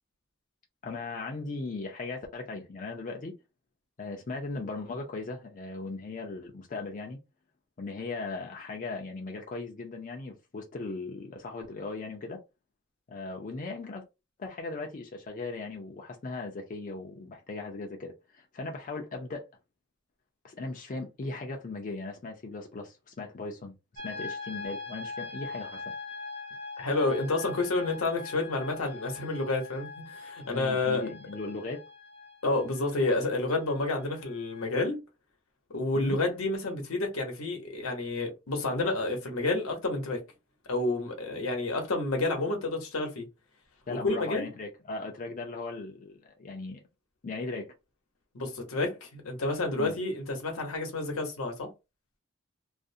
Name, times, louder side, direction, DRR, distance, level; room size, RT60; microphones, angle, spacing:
voice 1, 0.8-3.3 4.0-7.2 7.8-12.4 13.1-14.1 14.4-19.5 20.4-23.7 24.0-25.9 30.5-31.8 35.9-36.2 43.9-46.8 47.2-47.7 49.8-49.9, left 3 dB, 40° left, 0.4 m, -38 dB
sound 1, 24.0-34.8, left 3 dB, 65° right, 0.9 m, -43 dB
voice 2, 26.8-31.0 32.4-35.0 35.7-40.2 40.7-43.3 43.9-44.5 48.3-51.7, left 2 dB, 80° left, 0.8 m, -30 dB
2.4 x 2.0 x 2.6 m
head